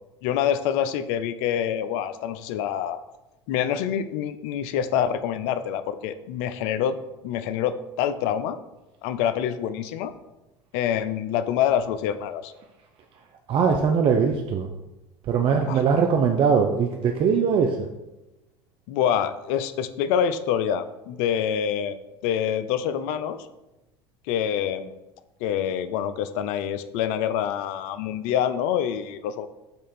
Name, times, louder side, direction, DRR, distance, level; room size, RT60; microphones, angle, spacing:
voice 1, 0.2-3.0 3.5-7.0 7.2-8.6 9.0-10.1 10.7-12.5 15.5-15.8 18.9-22.0 22.2-23.5 24.3-24.9 25.4-29.5, left 9 dB, 60° left, 12 dB, 0.4 m, -26 dB
voice 2, 13.5-14.7 15.3-17.8, right 6 dB, 40° right, 4 dB, 0.4 m, -21 dB
5.2 x 2.5 x 4.2 m, 1.0 s
hypercardioid pair, 80°, 14 cm